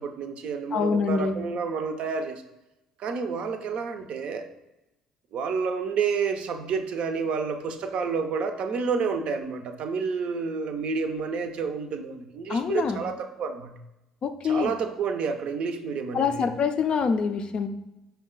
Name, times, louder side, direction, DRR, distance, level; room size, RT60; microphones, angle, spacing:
voice 1, 0.0-2.4 3.0-4.5 5.3-13.8 14.4-16.5, right 5 dB, 55° right, 7 dB, 0.5 m, -29 dB
voice 2, 0.7-1.4 12.5-13.0 14.2-14.7 16.1-17.7, left 5 dB, 45° left, 8 dB, 0.4 m, -25 dB
5.2 x 2.2 x 3.8 m, 0.98 s
hypercardioid pair, 55°, 2 cm